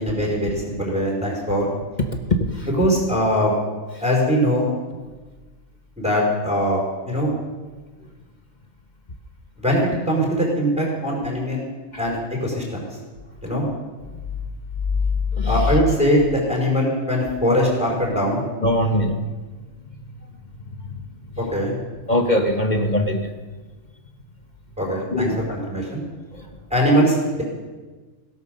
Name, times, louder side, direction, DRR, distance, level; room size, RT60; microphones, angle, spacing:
voice 1, 0.0-1.7 2.8-3.6 4.0-4.7 6.0-7.3 9.6-11.7 12.0-12.9 13.4-13.7 15.5-18.4 21.4-21.8 24.8-26.0 26.7-27.4, equal, 5° right, -2 dB, 4.9 m, -21 dB
voice 2, 2.0-2.7 15.3-15.7 18.6-19.3 20.8-20.9 22.1-23.3 25.1-25.4 26.4-26.5, left 1 dB, 35° left, 5 dB, 1.1 m, -21 dB
17.0 x 11.0 x 6.7 m, 1.3 s
omnidirectional pair, 1.4 m